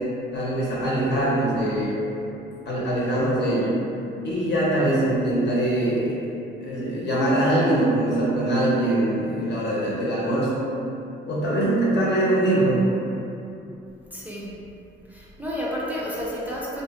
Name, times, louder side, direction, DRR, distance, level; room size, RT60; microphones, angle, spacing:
voice 1, 0.3-2.0 2.7-3.8 4.2-6.2 6.6-10.6 11.3-12.8, right 1 dB, 60° left, -7 dB, 0.9 m, -22 dB
voice 2, 14.1-14.6 15.1-16.8, equal, 10° right, -7 dB, 0.4 m, -31 dB
2.6 x 2.5 x 2.4 m, 2.8 s
cardioid pair, 90°, 20 cm